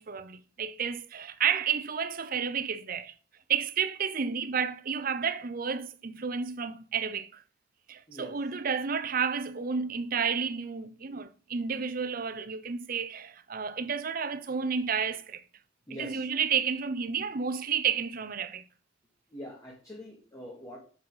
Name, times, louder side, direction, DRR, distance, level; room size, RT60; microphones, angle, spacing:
voice 1, 0.0-3.1 3.5-7.4 7.9-15.4 16.0-18.7, right 6 dB, 45° right, 0.6 m, -31 dB
voice 2, 15.9-16.2 19.3-20.8, left 1 dB, 15° left, 1.9 m, -43 dB
7.5 x 5.5 x 4.7 m
head